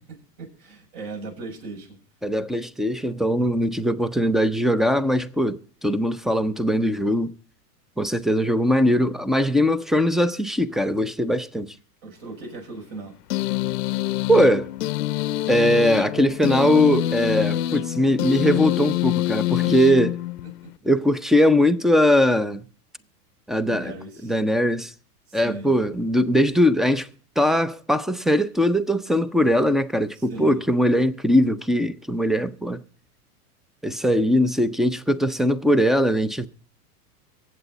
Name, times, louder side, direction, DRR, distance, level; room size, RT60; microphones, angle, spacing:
voice 1, 0.1-2.0 12.0-13.1 19.6-19.8 20.6-20.7 23.5-24.3 25.3-25.8 30.2-30.6, right 3 dB, 60° right, 7.1 m, -38 dB
voice 2, 2.2-7.3 8.0-11.7 14.3-14.7 15.5-20.1 20.8-22.6 23.5-23.9 24.2-24.9 25.3-27.1 27.4-32.8 33.8-36.5, equal, ahead, 0.5 m, -20 dB
sound 1, 13.3-20.7, left 14 dB, 80° left, 0.8 m, -26 dB
24.0 x 8.2 x 4.1 m
hypercardioid pair, 115°, 46 cm